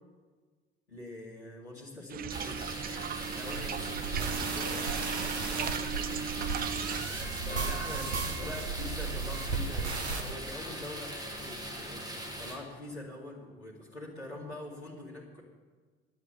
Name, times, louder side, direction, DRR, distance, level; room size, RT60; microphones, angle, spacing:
voice 1, 0.9-2.6 3.3-3.6 7.5-12.1 12.4-15.4, left 2 dB, 80° left, -6 dB, 2.5 m, -44 dB
sound 1, 2.1-7.1, right 9 dB, 30° right, 0.4 m, -37 dB
sound 2, 2.3-12.5, right 1 dB, 10° right, 2.9 m, -40 dB
sound 3, 3.2-10.3, right 4 dB, 85° right, 1.0 m, -35 dB
voice 2, 3.4-8.5, left 3 dB, 25° left, -3 dB, 3.9 m, -49 dB
10.0 x 8.6 x 10.0 m, 1.4 s
figure-of-eight pair, 50°, 32 cm